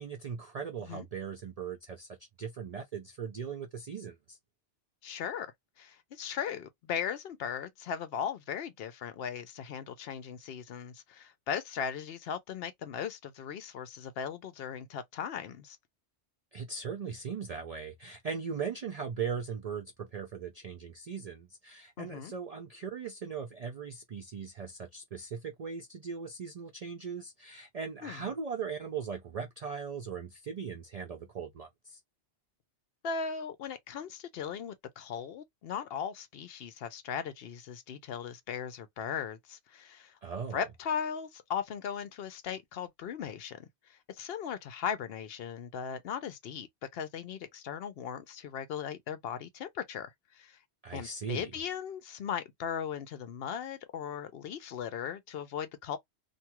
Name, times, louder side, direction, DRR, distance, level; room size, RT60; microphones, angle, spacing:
voice 1, 0.0-4.4 16.5-32.0 40.2-40.7 50.8-51.5, right 6 dB, 60° right, 0.4 m, -39 dB
voice 2, 5.0-5.5 5.8-15.8 22.0-22.3 28.0-28.2 33.0-40.2 40.5-46.7 46.9-50.6 50.9-56.0, left 7 dB, 65° left, 0.7 m, -38 dB
2.6 x 2.3 x 2.8 m
omnidirectional pair, 1.2 m